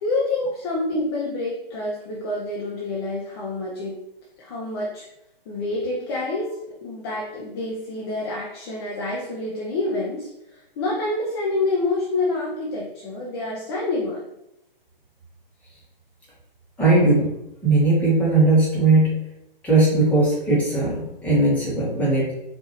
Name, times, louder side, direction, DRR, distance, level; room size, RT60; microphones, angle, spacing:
voice 1, 0.0-4.0 4.4-5.1 5.5-6.5 6.8-14.2, left 2 dB, 25° left, -4 dB, 0.6 m, -27 dB
voice 2, 16.8-17.3 17.6-19.1 19.6-22.3, right 2 dB, 5° left, -7 dB, 1.1 m, -18 dB
4.7 x 2.6 x 2.9 m, 0.86 s
figure-of-eight pair, 130°, 29 cm